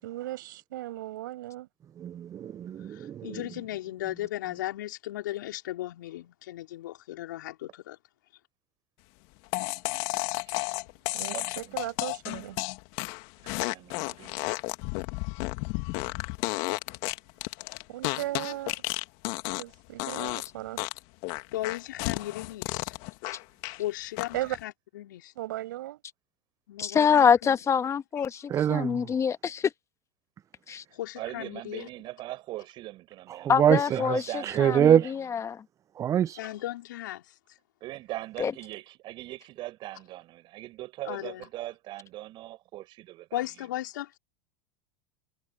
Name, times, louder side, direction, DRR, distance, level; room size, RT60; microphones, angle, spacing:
voice 1, 0.0-1.7 11.1-12.6 17.9-18.8 19.6-20.8 24.3-24.6 25.4-26.0, right 15 dB, 75° right, 7.0 m, -36 dB
voice 2, 2.0-3.4 28.5-29.1 33.3-35.1 36.0-36.4, right 10 dB, 30° right, 0.5 m, -25 dB
voice 3, 2.9-8.0 21.5-23.0 23.7-25.3 26.7-27.6 28.2-28.3 30.9-31.9 36.4-37.4 41.0-41.5 43.3-44.2, left 15 dB, 75° left, 4.2 m, -36 dB
sound 1, 9.5-19.7 20.0-20.5 20.8-23.8 24.2-24.6, left 26 dB, 60° left, 2.2 m, -32 dB
voice 4, 11.1-11.8 13.4-14.4 31.2-33.5 33.9-35.3 37.8-43.4, right 16 dB, 50° right, 7.0 m, -41 dB
voice 5, 26.8-29.7 30.7-30.8 33.5-35.6 38.4-38.5, left 7 dB, 30° left, 1.4 m, -25 dB
hypercardioid pair, 90°, 11 cm